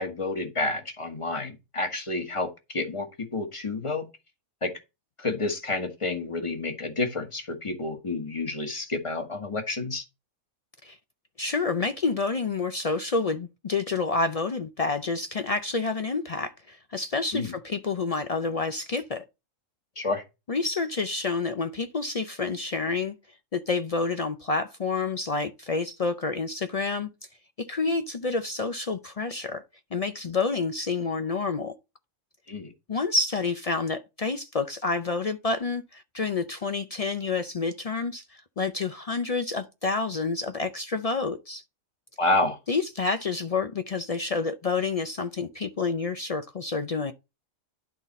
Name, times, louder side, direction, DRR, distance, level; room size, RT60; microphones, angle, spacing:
voice 1, 0.0-4.1 4.6-4.7 5.2-10.0 17.3-17.5 20.0-20.2 32.5-32.7 42.2-42.6, left 2 dB, 25° left, 1.3 m, -29 dB
voice 2, 11.4-19.2 20.5-23.1 23.5-27.1 27.6-29.6 29.9-31.7 32.9-38.2 38.6-41.6 42.7-47.1, left 4 dB, 70° left, 0.3 m, -28 dB
11.5 x 4.0 x 4.1 m
omnidirectional pair, 1.4 m